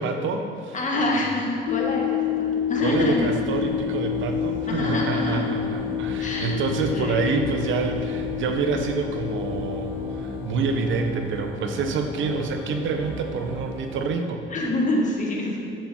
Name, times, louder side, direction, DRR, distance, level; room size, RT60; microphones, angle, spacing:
voice 1, 0.0-0.8 2.8-14.4, right 4 dB, 75° right, 5 dB, 1.1 m, -27 dB
voice 2, 0.7-3.2 4.7-5.5 6.2-7.3 14.5-15.6, left 1 dB, 40° left, -1 dB, 2.2 m, -26 dB
sound 1, 1.7-10.8, left 12 dB, 75° left, 0.5 m, -29 dB
sound 2, 2.9-14.1, right 2 dB, 10° right, 1.9 m, -36 dB
10.5 x 7.5 x 4.4 m, 2.6 s
cardioid pair, 90°, 20 cm